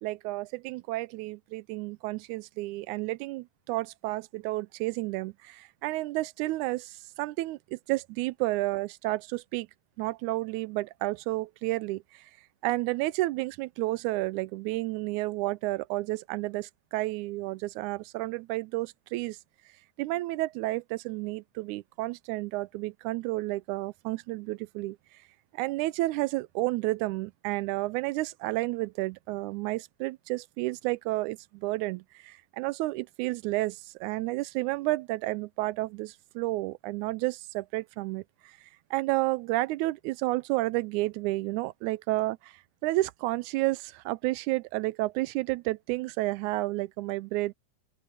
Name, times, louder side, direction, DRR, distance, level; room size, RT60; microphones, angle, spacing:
voice 1, 0.0-9.7 10.0-12.3 12.6-19.4 20.0-25.0 25.5-38.5 38.9-42.5 42.8-47.5, right 19 dB, 85° right, 2.0 m, -31 dB
open air
omnidirectional pair, 3.4 m